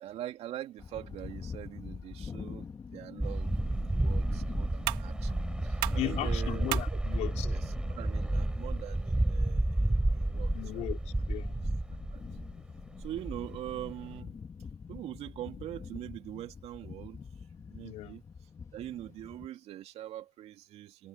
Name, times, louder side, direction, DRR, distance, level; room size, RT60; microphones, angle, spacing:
voice 1, 0.0-7.0 7.4-10.8 11.9-12.2 13.0-14.4 14.9-17.2 17.7-18.2 18.7-21.1, right 13 dB, 55° right, 2.4 m, -43 dB
sound 1, 0.8-19.5, left 5 dB, 25° left, 2.4 m, -45 dB
sound 2, 3.2-12.6 12.9-14.2, right 1 dB, 5° right, 3.9 m, -31 dB
sound 3, 3.3-10.3, right 22 dB, 85° right, 2.7 m, -42 dB
voice 2, 5.9-7.5 10.5-11.6 17.8-18.2, left 16 dB, 60° left, 4.6 m, -37 dB
supercardioid pair, 120°, 13 cm